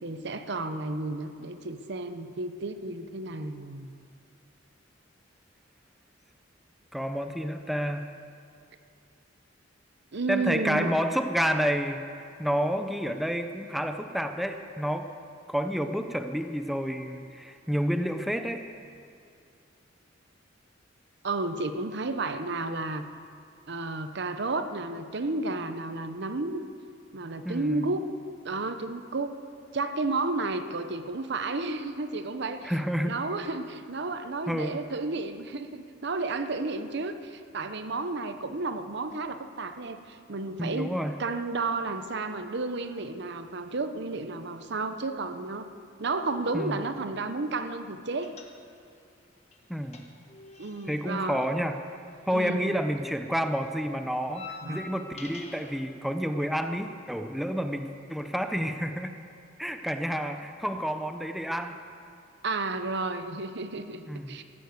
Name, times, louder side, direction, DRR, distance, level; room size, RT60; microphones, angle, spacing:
voice 1, 0.0-3.9 10.1-10.9 21.2-23.0 23.7-26.6 27.1-28.0 28.4-29.4 29.7-32.7 33.0-40.9 41.2-45.7 46.0-48.4 50.6-51.6 52.3-52.7 54.6-55.0 62.4-64.4, right 3 dB, 60° right, 9 dB, 0.8 m, -32 dB
voice 2, 6.9-8.1 10.3-12.0 12.4-15.1 15.5-18.6 27.4-27.9 32.6-33.1 34.5-34.8 40.6-41.2 46.5-46.8 49.7-50.0 50.9-51.8 52.3-59.1 59.6-61.8 64.1-64.4, equal, ahead, 6 dB, 0.6 m, -29 dB
sound 1, 48.2-49.0 49.2-52.6 52.9-55.8, left 4 dB, 35° left, 1.5 m, -47 dB
14.0 x 11.5 x 8.2 m, 2.4 s
head